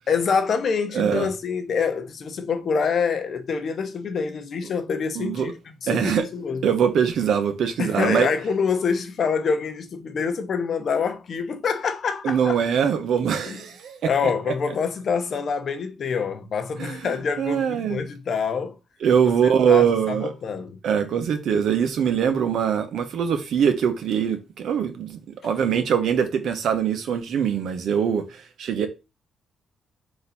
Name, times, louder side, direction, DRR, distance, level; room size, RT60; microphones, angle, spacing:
voice 1, 0.1-6.6 7.8-12.6 13.4-13.6 14.0-18.8 19.4-20.8 25.4-25.7, left 5 dB, 55° left, 0.8 m, -26 dB
voice 2, 0.9-1.3 5.1-5.5 5.9-6.3 6.6-8.3 12.2-14.3 16.8-18.0 19.0-20.3 20.8-28.9, right 7 dB, 70° right, 0.8 m, -23 dB
4.0 x 2.6 x 4.1 m
cardioid pair, 90°, 0 cm